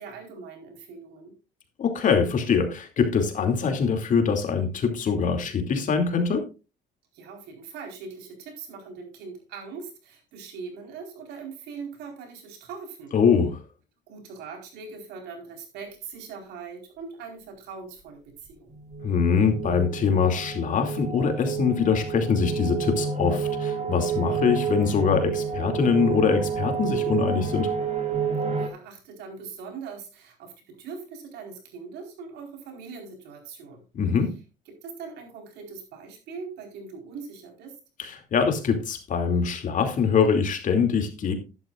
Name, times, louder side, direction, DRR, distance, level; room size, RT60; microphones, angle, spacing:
voice 1, 0.0-1.3 7.1-13.1 14.1-18.8 28.6-33.8 34.7-37.8, right 5 dB, 85° right, 3 dB, 4.4 m, -41 dB
voice 2, 1.8-6.4 13.1-13.6 19.0-27.7 33.9-34.3 38.0-41.3, left 6 dB, 50° left, 5 dB, 2.6 m, -23 dB
sound 1, 18.7-28.7, right 6 dB, 45° right, 2.5 m, -30 dB
12.5 x 11.0 x 2.5 m, 0.31 s
cardioid pair, 110°, 17 cm